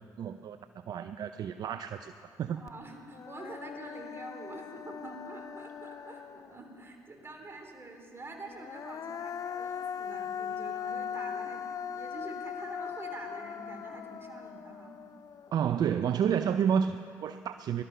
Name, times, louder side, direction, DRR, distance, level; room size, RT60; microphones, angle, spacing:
voice 1, 0.2-0.6 0.9-2.1 2.4-2.6 15.5-17.8, right 8 dB, 60° right, 10 dB, 0.5 m, -30 dB
voice 2, 2.5-14.9, right 2 dB, 30° right, 3 dB, 3.3 m, -46 dB
Human voice, 2.7-2.8 3.1-6.8 8.4-15.7, left 8 dB, 50° left, 0.4 m, -40 dB
18.5 x 12.5 x 5.6 m, 2.5 s
hypercardioid pair, 55°, 8 cm